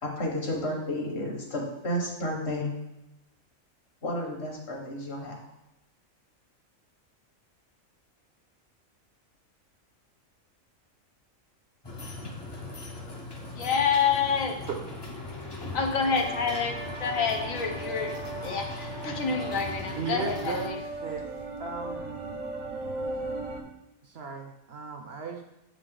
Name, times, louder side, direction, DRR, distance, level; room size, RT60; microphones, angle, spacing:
voice 1, 0.0-2.7 4.0-5.4, left 1 dB, 55° left, 0 dB, 1.6 m, -32 dB
sound 1, 11.8-20.7, left 2 dB, 25° left, 0.6 m, -39 dB
voice 2, 13.6-14.6 15.7-18.1 18.4-20.8, left 6 dB, 75° left, 3 dB, 1.2 m, -28 dB
Ambient Dreamscape, 16.0-23.6, right 2 dB, 75° right, 1.2 m, -37 dB
voice 3, 20.0-20.8 21.0-21.3 21.6-22.2 24.0-25.4, right 5 dB, 60° right, 4 dB, 0.8 m, -36 dB
7.2 x 4.0 x 3.8 m, 0.94 s
omnidirectional pair, 1.4 m